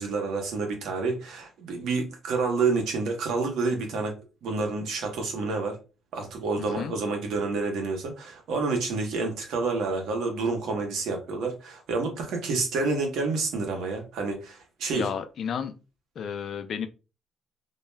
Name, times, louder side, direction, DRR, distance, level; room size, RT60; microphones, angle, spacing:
voice 1, 0.0-4.2 4.4-5.8 6.1-15.1, right 3 dB, 80° right, 0.8 m, -29 dB
voice 2, 6.6-6.9 14.9-15.7 16.2-16.9, left 7 dB, 60° left, 0.4 m, -32 dB
2.3 x 2.1 x 3.2 m
cardioid pair, 90°, 0 cm